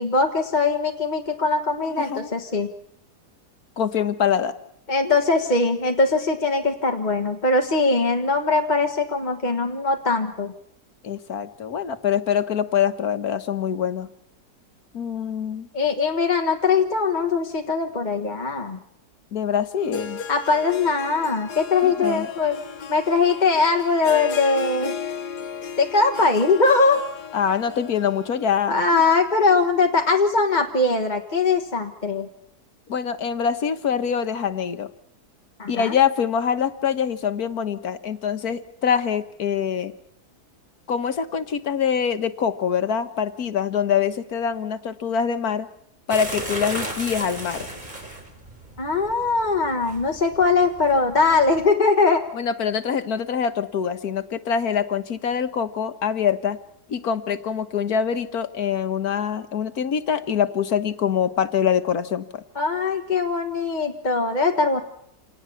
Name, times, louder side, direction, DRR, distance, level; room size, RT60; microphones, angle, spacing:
voice 1, 0.0-2.7 4.9-10.5 15.7-18.8 20.3-22.6 22.9-24.9 25.8-27.0 28.7-32.3 35.6-35.9 48.8-52.2 62.5-64.8, left 4 dB, 30° left, 3 dB, 1.6 m, -21 dB
voice 2, 1.8-2.3 3.8-4.5 5.0-5.2 11.0-14.1 14.9-15.7 19.3-20.2 21.8-22.3 27.3-29.0 32.9-34.9 35.7-39.9 40.9-45.7 46.1-47.7 52.3-56.6 56.9-62.4, left 7 dB, 70° left, 10 dB, 1.7 m, -24 dB
Harp, 19.8-28.8, left 6 dB, 90° left, 1.7 m, -36 dB
sound 1, 46.1-51.7, right 1 dB, 25° right, 4.2 m, -35 dB
27.5 x 19.0 x 7.0 m, 0.72 s
omnidirectional pair, 1.7 m